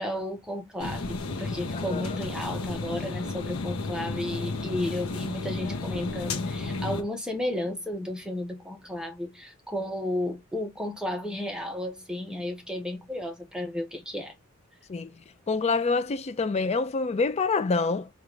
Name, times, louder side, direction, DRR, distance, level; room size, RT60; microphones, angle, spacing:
voice 1, 0.0-14.3, left 1 dB, 5° right, 0.7 m, -33 dB
sound 1, 0.8-7.0, left 3 dB, 75° left, 0.7 m, -32 dB
voice 2, 1.7-2.0 14.9-15.1 15.5-18.1, left 4 dB, 30° left, 0.4 m, -26 dB
3.7 x 2.4 x 3.0 m
head